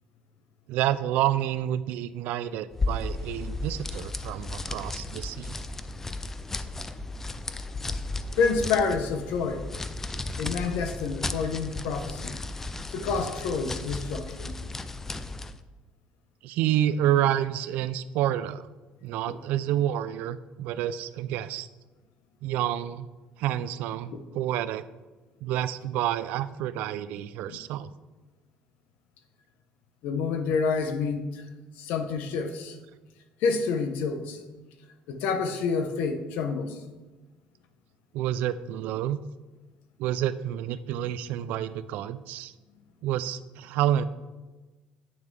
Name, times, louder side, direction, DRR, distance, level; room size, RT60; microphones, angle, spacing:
voice 1, 0.7-5.6 16.4-18.7 19.0-21.7 22.4-23.1 23.4-24.8 25.4-27.9 38.1-39.2 40.0-42.5 43.0-44.0, right 12 dB, 75° right, 15 dB, 0.4 m, -29 dB
sound 1, 2.7-15.6, left 2 dB, 15° left, 0.3 m, -34 dB
voice 2, 8.4-9.6 10.4-12.4 12.9-14.5 24.1-24.2 27.5-27.6 30.0-31.4 31.8-32.8 33.4-34.4 35.1-36.8, left 5 dB, 80° left, 7 dB, 0.9 m, -28 dB
8.8 x 6.7 x 3.3 m, 1.2 s
cardioid pair, 160°, 3 cm